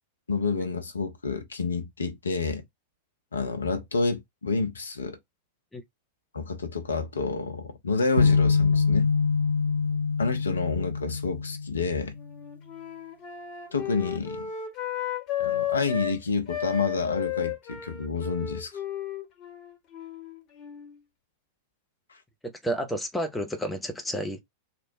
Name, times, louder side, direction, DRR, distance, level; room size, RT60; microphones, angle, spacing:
voice 1, 0.3-2.6 3.3-5.2 6.3-9.1 10.2-12.1 13.7-14.5 15.4-18.7, left 4 dB, 75° left, 0.6 m, -29 dB
sound 1, 8.2-12.2, left 4 dB, 70° right, 1.0 m, -24 dB
Wind instrument woodwind instrument, 12.2-16.2 16.5-21.0, left 10 dB, 35° left, 0.9 m, -34 dB
voice 2, 22.4-24.4, equal, 5° left, 0.6 m, -31 dB
2.9 x 2.1 x 2.6 m
figure-of-eight pair, 90°, 0 cm